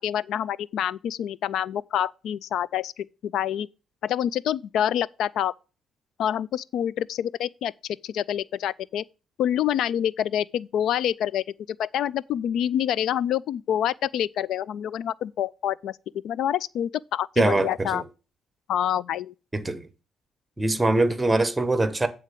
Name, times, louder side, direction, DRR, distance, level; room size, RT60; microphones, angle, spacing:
voice 1, 0.0-3.7 4.0-5.5 6.2-7.7 8.0-9.0 9.4-16.0 16.2-18.0 18.7-19.3, left 10 dB, 80° left, 0.3 m, -27 dB
voice 2, 17.4-18.0 19.5-19.9 20.6-22.1, right 2 dB, 15° right, 1.1 m, -23 dB
8.8 x 3.8 x 6.7 m
cardioid pair, 90°, 0 cm